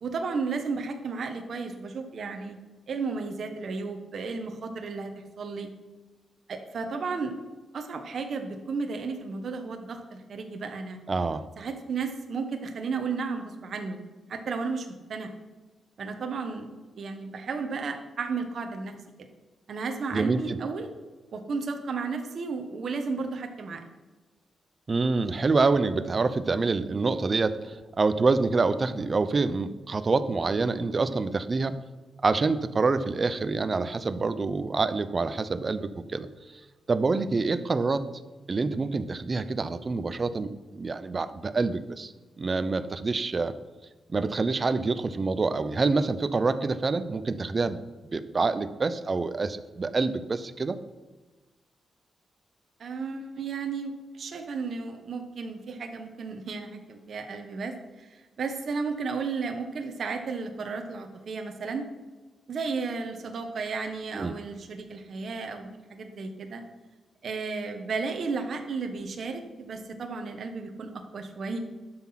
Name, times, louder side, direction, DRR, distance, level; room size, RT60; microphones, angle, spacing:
voice 1, 0.0-2.6 2.9-5.7 6.5-7.3 7.7-11.0 11.6-14.0 14.3-15.3 16.0-16.7 17.0-18.9 19.7-20.9 21.3-23.8 52.8-61.8 62.5-66.6 67.2-71.6, right 4 dB, 55° right, 5 dB, 1.2 m, -33 dB
voice 2, 11.1-11.4 20.1-20.6 24.9-31.8 32.2-36.3 36.9-38.1 38.5-42.1 42.4-43.5 44.1-47.8 48.1-50.8 64.2-64.3, right 3 dB, 30° right, 12 dB, 0.6 m, -26 dB
11.5 x 5.9 x 5.8 m, 1.3 s
wide cardioid pair, 150°, 0 cm